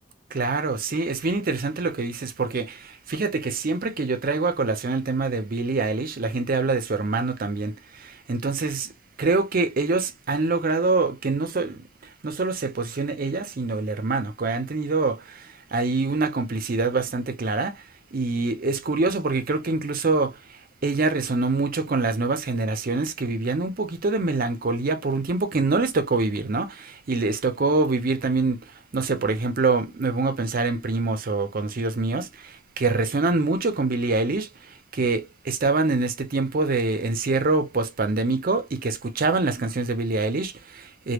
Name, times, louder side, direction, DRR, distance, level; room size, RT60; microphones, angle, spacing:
voice 1, 0.3-8.9 9.2-17.8 18.1-28.6 28.9-41.1, right 3 dB, 45° right, 0.5 m, -25 dB
3.3 x 2.2 x 2.9 m
head